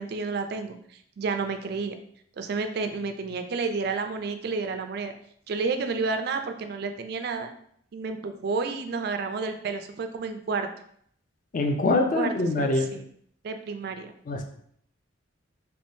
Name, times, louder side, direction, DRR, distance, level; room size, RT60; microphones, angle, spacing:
voice 1, 0.0-2.0 2.4-5.1 5.5-7.5 7.9-10.7 12.1-13.0 13.4-14.1, right 4 dB, 55° right, 7 dB, 0.3 m, -30 dB
voice 2, 11.5-12.9 14.3-14.4, left 2 dB, 40° left, 5 dB, 0.4 m, -24 dB
3.5 x 2.9 x 2.6 m, 0.65 s
head